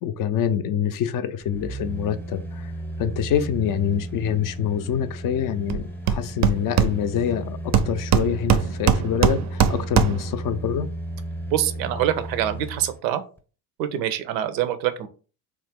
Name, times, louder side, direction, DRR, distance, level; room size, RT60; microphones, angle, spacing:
voice 1, 0.0-2.7 3.0-10.9, left 8 dB, 45° left, 12 dB, 0.4 m, -26 dB
sound 1, 1.4-13.0 13.4-13.5, right 1 dB, 5° left, 0.7 m, -34 dB
Hammer, 5.7-5.8 6.1-7.3 7.7-10.4, right 7 dB, 35° right, 0.4 m, -21 dB
voice 2, 11.5-13.2 13.8-15.1, right 11 dB, 85° right, 11 dB, 0.6 m, -25 dB
3.0 x 2.1 x 3.5 m, 0.37 s
hypercardioid pair, 55°, 50 cm